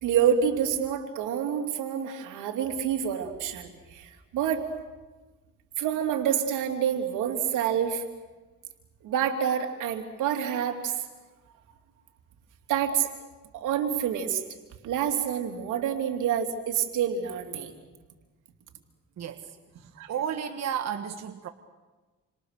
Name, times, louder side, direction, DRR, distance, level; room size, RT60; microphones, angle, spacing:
voice 1, 0.0-4.7 5.8-8.0 9.0-11.0 12.7-13.1 13.5-14.4 14.8-17.7 20.0-20.1, right 8 dB, 90° right, 5 dB, 3.2 m, -27 dB
voice 2, 19.2-21.5, right 8 dB, 60° right, 6 dB, 1.5 m, -33 dB
29.0 x 26.0 x 6.8 m, 1.2 s
cardioid pair, 90°, 30 cm